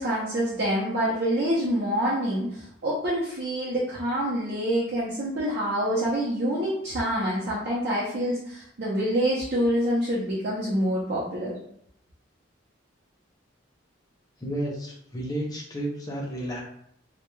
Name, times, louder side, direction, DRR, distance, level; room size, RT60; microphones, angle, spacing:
voice 1, 0.0-11.6, equal, 50° right, -7 dB, 0.6 m, -26 dB
voice 2, 14.4-16.6, right 1 dB, 20° left, -2 dB, 0.5 m, -32 dB
2.2 x 2.1 x 3.0 m, 0.68 s
head